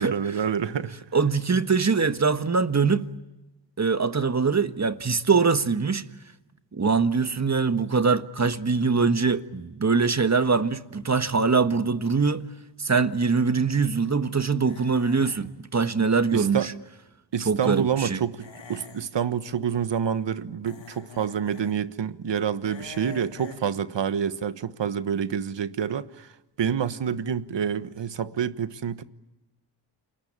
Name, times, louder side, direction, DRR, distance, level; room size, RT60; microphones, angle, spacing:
voice 1, 0.0-1.0 16.3-16.7 17.3-26.3 26.6-29.0, right 7 dB, 75° right, 1.3 m, -28 dB
voice 2, 1.1-3.1 3.8-6.0 6.7-12.4 12.8-16.7 17.4-18.2, right 5 dB, 35° right, 1.6 m, -23 dB
sound 1, 14.6-15.5 18.4-19.0 20.7-21.7 22.6-23.7, left 5 dB, 85° left, 3.6 m, -45 dB
29.5 x 21.0 x 8.9 m
cardioid pair, 50°, 44 cm